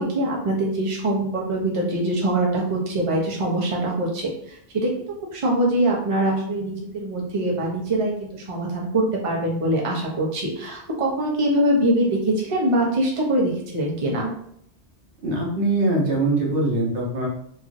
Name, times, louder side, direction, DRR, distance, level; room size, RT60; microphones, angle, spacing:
voice 1, 0.0-5.0 5.3-14.3, right 1 dB, 40° right, -2 dB, 0.6 m, -23 dB
voice 2, 15.2-17.3, right 2 dB, 55° right, -2 dB, 0.9 m, -22 dB
3.0 x 2.5 x 2.5 m, 0.66 s
omnidirectional pair, 1.1 m